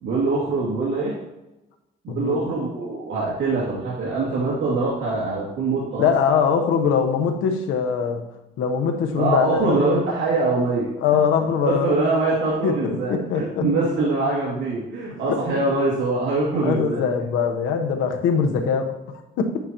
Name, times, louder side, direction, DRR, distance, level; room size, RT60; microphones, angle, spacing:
voice 1, 0.0-1.1 2.0-6.1 9.2-10.9 11.6-17.0, right 3 dB, 75° right, -6 dB, 2.6 m, -23 dB
voice 2, 2.1-2.4 6.0-8.3 8.6-9.7 11.0-11.9 12.6-13.6 15.3-15.4 16.6-18.9 19.4-19.5, left 6 dB, 90° left, 4 dB, 1.2 m, -22 dB
11.5 x 9.3 x 3.1 m, 0.96 s
cardioid pair, 90°, 20 cm